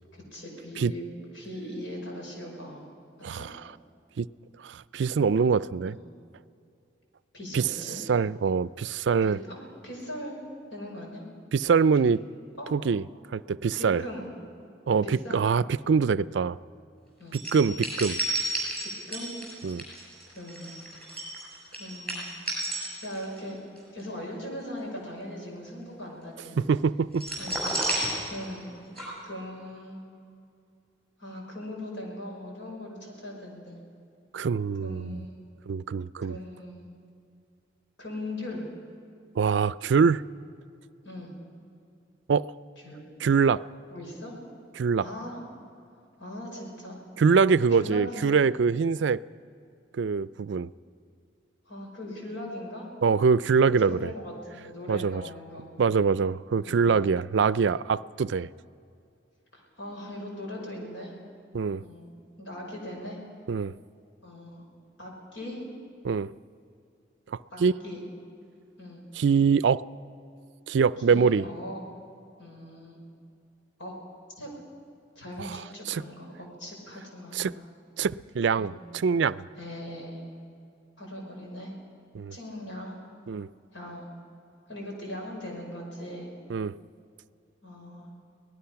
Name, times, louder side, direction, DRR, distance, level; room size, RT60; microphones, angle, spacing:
voice 1, 0.1-1.0 1.3-2.8 3.2-3.5 5.8-6.0 7.3-8.0 9.2-10.4 10.7-11.3 12.6-12.7 13.8-14.3 15.0-15.4 17.2-17.4 18.8-19.4 20.3-20.7 21.7-22.3 22.8-23.6 23.9-26.6 27.4-27.7 28.3-28.7 29.2-30.0 31.2-33.8 34.8-35.4 36.2-36.8 38.0-38.6 41.0-41.3 42.8-43.0 43.9-44.3 45.0-45.4 46.2-47.0 47.7-48.3 51.7-52.9 53.8-55.7 56.6-56.8 59.5-61.1 61.8-62.1 62.4-63.2 64.2-64.6 65.0-65.6 67.5-68.0 68.8-69.0 71.1-71.8 72.4-73.0 73.8-73.9 74.4-74.5 75.2-77.6 78.6-78.8 79.6-80.2 81.0-81.7 82.3-83.0 83.7-84.1 84.7-86.3 87.6-88.1, left 1 dB, 80° left, -1 dB, 5.7 m, -39 dB
voice 2, 4.6-6.0 7.5-7.6 8.1-9.4 11.5-12.2 12.7-13.0 13.3-14.0 14.9-16.6 17.3-18.2 19.6-19.8 26.6-27.3 34.3-35.2 35.7-36.4 39.4-40.2 42.3-42.5 43.2-43.6 44.8-45.1 47.2-49.2 50.0-50.7 53.0-54.1 54.9-55.2 55.8-58.5 61.5-61.8 63.5-63.7 66.0-66.3 67.3-67.7 69.2-69.8 70.7-71.5 75.4-75.6 75.9-76.0 77.3-77.5 78.0-79.5 82.1-82.4 83.3-83.5 86.5-86.7, right 5 dB, 70° right, 18 dB, 0.4 m, -24 dB
sound 1, 17.3-23.4 23.8-24.0 27.1-28.7 29.0-29.1, right 1 dB, 5° left, 6.4 m, -31 dB
24.5 x 18.5 x 5.8 m, 2.5 s
head